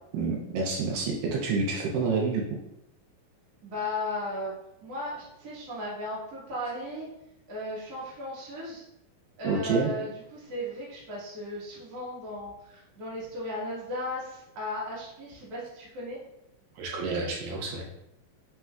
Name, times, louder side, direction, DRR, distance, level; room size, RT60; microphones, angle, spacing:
voice 1, 0.1-2.4 9.4-9.9 16.8-17.9, right 4 dB, 80° right, -1 dB, 2.1 m, -28 dB
voice 2, 3.6-4.5 4.8-7.1 7.5-8.8 9.4-16.2, left 1 dB, 50° right, -8 dB, 1.1 m, -36 dB
5.6 x 3.2 x 2.3 m, 0.85 s
omnidirectional pair, 4.1 m